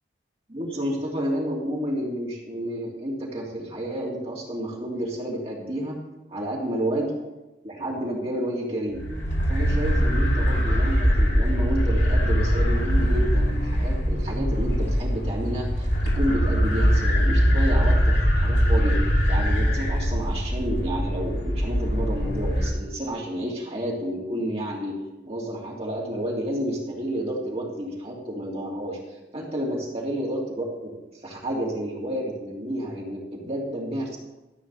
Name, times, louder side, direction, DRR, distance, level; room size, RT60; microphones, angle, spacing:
voice 1, 0.5-6.0 6.3-7.2 7.6-9.0 9.5-19.0 19.3-25.0 25.2-30.9 31.2-34.2, right 1 dB, 35° right, -4 dB, 3.0 m, -30 dB
sound 1, 8.9-22.7, equal, 70° left, 3.2 m, -22 dB
13.5 x 5.7 x 7.0 m, 1.1 s
head